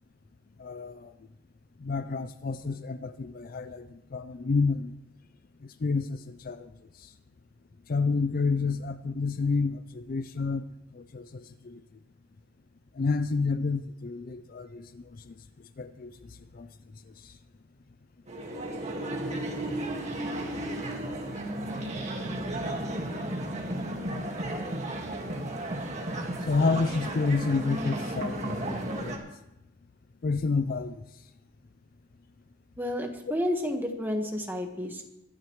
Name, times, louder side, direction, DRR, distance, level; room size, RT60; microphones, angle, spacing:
voice 1, 0.6-1.1 1.8-4.9 5.6-6.7 7.0-7.1 7.9-10.7 10.9-11.8 13.0-15.3 15.8-16.7 17.2-17.3 23.8-23.9 26.4-29.2 30.2-30.9, left 4 dB, 40° left, 0.4 m, -30 dB
sound 1, 18.3-29.2, right 1 dB, 30° right, 1.8 m, -34 dB
voice 2, 32.8-35.1, left 1 dB, 10° right, 1.4 m, -31 dB
23.0 x 12.5 x 3.2 m
head